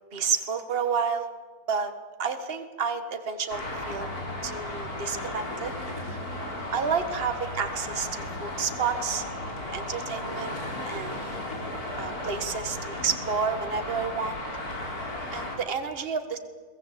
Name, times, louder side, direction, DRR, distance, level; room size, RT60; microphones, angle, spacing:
voice 1, 0.1-1.3 1.7-1.9 2.2-4.1 4.4-5.7 6.0-6.3 6.7-10.6 10.9-11.2 12.0-14.4 15.3-16.4, right 6 dB, 40° right, 8 dB, 1.7 m, -30 dB
Traffic noise roadway noise, 3.5-15.6, left 1 dB, 70° left, 4.5 m, -35 dB
22.5 x 18.5 x 8.3 m, 1.5 s
omnidirectional pair, 1.7 m